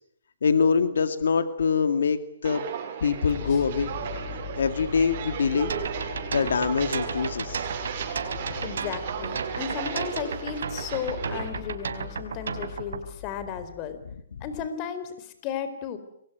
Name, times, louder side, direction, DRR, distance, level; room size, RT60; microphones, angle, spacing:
voice 1, 0.4-2.6 3.0-3.9 4.6-5.8 6.3-7.6 8.4-8.6 14.3-14.4, left 5 dB, 85° left, 11 dB, 2.3 m, -24 dB
Walk footsteps, 2.4-11.5, right 8 dB, 45° right, 7.1 m, -35 dB
sound 1, 3.3-14.3, left 8 dB, 45° left, 4.8 m, -41 dB
sound 2, 5.7-13.0, right 6 dB, 85° right, 4.6 m, -33 dB
voice 2, 8.6-14.0 14.4-16.0, left 8 dB, 30° left, 11 dB, 4.1 m, -34 dB
28.0 x 22.5 x 9.4 m, 0.71 s
hypercardioid pair, 160°, 0 cm